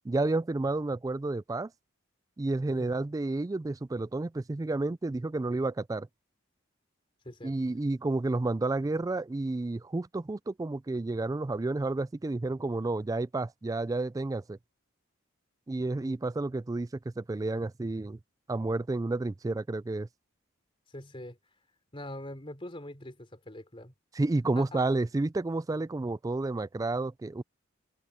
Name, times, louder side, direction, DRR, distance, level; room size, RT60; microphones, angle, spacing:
voice 1, 0.0-1.7 2.4-6.1 7.4-14.6 15.7-16.9 17.2-18.2 18.5-20.1 24.1-27.4, right 2 dB, 15° right, 0.3 m, -30 dB
voice 2, 20.9-21.4 21.9-23.9 24.5-24.8, left 1 dB, 25° left, 3.4 m, -43 dB
head